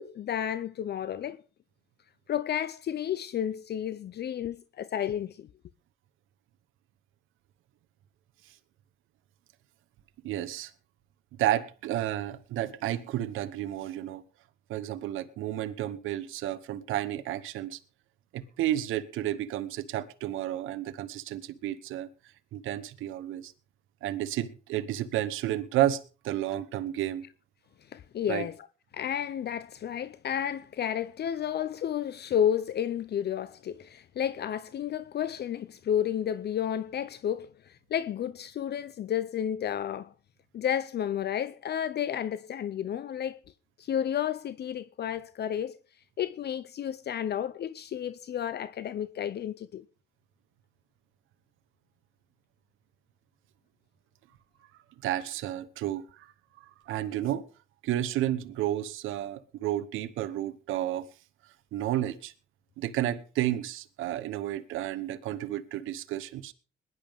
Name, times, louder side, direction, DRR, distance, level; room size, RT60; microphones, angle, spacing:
voice 1, 0.0-1.4 2.3-5.5 26.5-26.6 27.9-28.6 28.9-40.1 40.5-43.4 43.8-45.8 46.2-49.8, left 9 dB, 55° left, 0.7 m, -31 dB
voice 2, 10.2-10.7 11.4-14.2 14.7-17.8 18.3-22.1 22.5-23.5 24.0-27.3 28.3-28.5 55.0-56.3 56.6-57.5 57.8-61.1 61.7-62.3 62.8-66.5, right 13 dB, 90° right, 1.0 m, -31 dB
21.0 x 11.0 x 3.6 m
cardioid pair, 90°, 20 cm